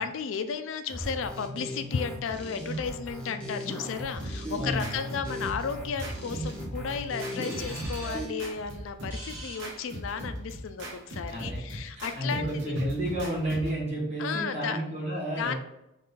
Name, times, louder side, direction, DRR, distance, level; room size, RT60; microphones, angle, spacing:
voice 1, 0.0-12.7 14.2-14.8 15.4-15.5, left 6 dB, 75° left, 9 dB, 0.4 m, -34 dB
Sick Dance Bass, 0.9-8.3, equal, 5° left, 0.9 m, -37 dB
sound 1, 4.2-13.8, equal, 65° right, 1.1 m, -39 dB
voice 2, 4.6-5.0 11.3-15.6, right 1 dB, 35° right, -5 dB, 1.6 m, -31 dB
sound 2, 7.4-10.5, right 1 dB, 10° right, 1.2 m, -45 dB
4.0 x 3.3 x 3.7 m, 0.89 s
head